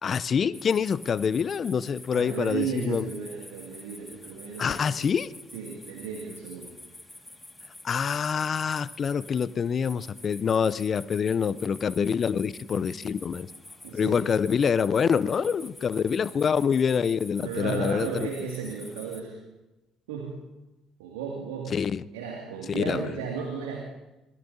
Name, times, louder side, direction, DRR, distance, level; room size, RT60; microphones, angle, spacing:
voice 1, 0.0-3.1 4.6-5.3 7.8-13.5 13.9-18.1 21.7-22.0 22.7-23.0, left 6 dB, 45° left, 18 dB, 0.5 m, -26 dB
sound 1, 0.5-19.2, left 2 dB, 10° left, 1.9 m, -48 dB
voice 2, 2.1-5.1 5.5-6.7 13.8-14.2 17.4-19.4 20.1-20.4 21.0-21.7 22.1-23.8, right 6 dB, 80° right, 0 dB, 2.2 m, -34 dB
26.0 x 19.5 x 2.7 m, 1.0 s
hypercardioid pair, 55°, 0 cm